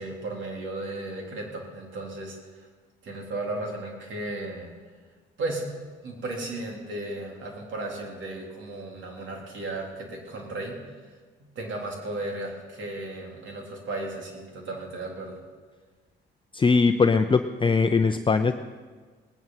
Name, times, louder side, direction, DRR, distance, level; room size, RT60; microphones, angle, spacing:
voice 1, 0.0-2.7 3.0-4.7 5.4-5.7 6.0-10.8 11.4-15.4, right 2 dB, 70° right, 0 dB, 3.6 m, -35 dB
voice 2, 16.5-18.5, left 4 dB, 25° left, 7 dB, 0.6 m, -21 dB
19.0 x 10.0 x 5.7 m, 1.4 s
cardioid pair, 90°, 20 cm